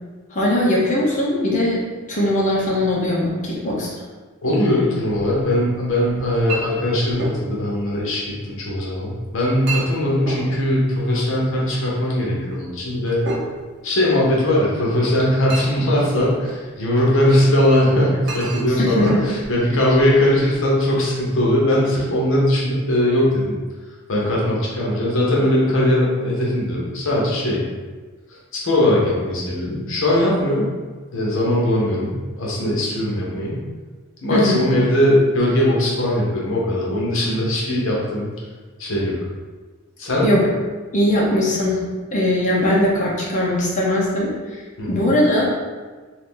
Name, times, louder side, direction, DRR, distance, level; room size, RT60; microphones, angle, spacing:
voice 1, 0.3-1.8 2.1-3.9 18.7-19.2 34.3-34.6 40.2-40.4 40.9-41.8 42.1-44.3 44.9-45.5, left 1 dB, 35° left, -4 dB, 0.8 m, -20 dB
voice 2, 4.4-13.2 13.8-23.6 24.1-27.6 28.3-30.7 31.1-33.6 34.2-38.3 38.8-39.2 40.0-40.3 44.8-45.1, left 1 dB, 65° left, -4 dB, 0.9 m, -20 dB
Chink clink, 5.0-20.6, right 2 dB, 50° right, 0.7 m, -34 dB
2.7 x 2.6 x 3.6 m, 1.4 s
head